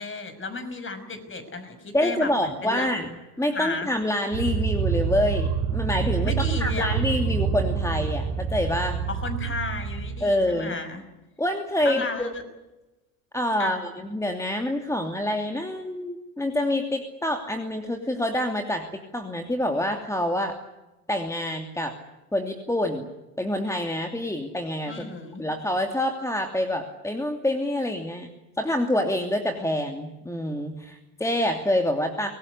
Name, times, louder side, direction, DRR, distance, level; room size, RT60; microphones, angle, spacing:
voice 1, 0.0-2.9 3.5-3.9 6.2-7.0 9.1-11.0 11.8-12.4 13.6-13.8 24.9-25.4, left 3 dB, 25° left, 9 dB, 5.8 m, -33 dB
voice 2, 1.9-9.0 10.2-10.8 11.4-12.3 13.3-18.9 19.1-20.6 21.1-22.0 22.3-23.1 23.4-25.1 25.4-28.3 28.6-32.3, left 1 dB, 5° left, 4 dB, 2.8 m, -27 dB
sound 1, 4.3-10.2, right 6 dB, 60° right, 5.5 m, -27 dB
24.5 x 19.0 x 9.7 m, 1.0 s
hypercardioid pair, 85°, 48 cm